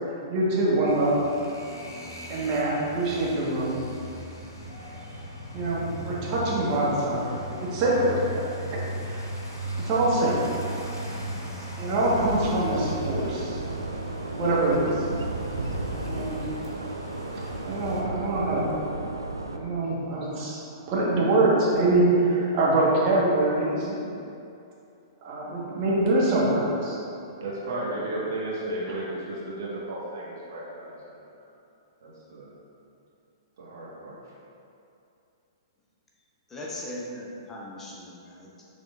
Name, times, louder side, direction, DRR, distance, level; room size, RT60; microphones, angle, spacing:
voice 1, 0.3-1.2 2.3-3.8 5.5-7.3 7.6-8.2 8.7-8.8 9.1-9.2 9.8-10.5 11.8-13.6 14.4-15.0 16.0-16.4 17.7-18.7 19.5-20.6 20.9-24.0 25.2-27.0, right 2 dB, 35° right, -6 dB, 1.2 m, -24 dB
sound 1, 0.8-18.0, right 1 dB, 80° left, 0.9 m, -37 dB
sound 2, 12.1-19.6, right 2 dB, 85° right, 0.3 m, -34 dB
voice 2, 27.4-31.2 32.0-32.5 33.6-34.2, right 1 dB, 60° right, -6 dB, 1.2 m, -34 dB
voice 3, 36.5-38.6, left 1 dB, 15° left, -5 dB, 0.6 m, -39 dB
6.2 x 3.7 x 2.4 m, 2.7 s
figure-of-eight pair, 110°, 2 cm